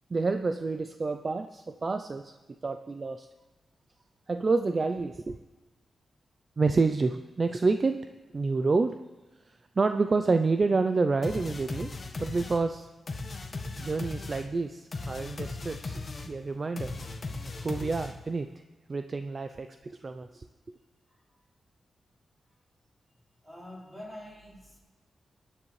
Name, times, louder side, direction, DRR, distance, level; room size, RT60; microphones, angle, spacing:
voice 1, 0.1-2.4 2.6-3.3 4.3-5.4 6.6-8.0 8.3-9.0 9.5-11.9 12.2-12.9 13.8-16.0 16.2-16.9 17.6-18.5 18.9-20.5, right 3 dB, 35° right, 8 dB, 0.4 m, -28 dB
sound 1, 11.2-18.4, left 3 dB, 40° left, 1.1 m, -38 dB
voice 2, 23.4-24.8, left 1 dB, 5° right, -5 dB, 4.4 m, -46 dB
22.5 x 9.9 x 3.2 m, 1.2 s
wide cardioid pair, 130°, 0 cm